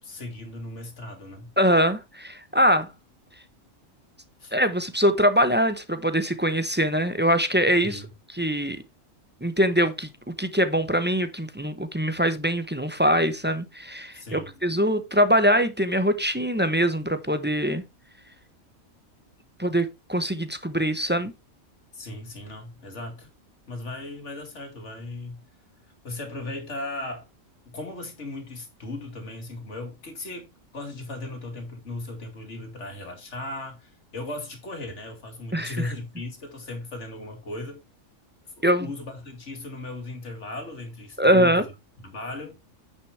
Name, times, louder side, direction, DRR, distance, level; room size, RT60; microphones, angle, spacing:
voice 1, 0.0-1.5 4.4-4.5 7.8-8.1 14.1-14.8 21.9-23.3 23.7-25.4 26.0-27.3 27.7-30.5 30.7-37.8 38.8-41.7 42.0-42.6, left 2 dB, 60° left, 2.6 m, -37 dB
voice 2, 1.6-2.9 4.5-8.0 8.3-8.8 9.4-17.8 19.6-21.3 35.5-35.9 38.6-38.9 41.2-41.6, equal, 10° right, 0.6 m, -23 dB
9.4 x 6.2 x 3.3 m
omnidirectional pair, 1.4 m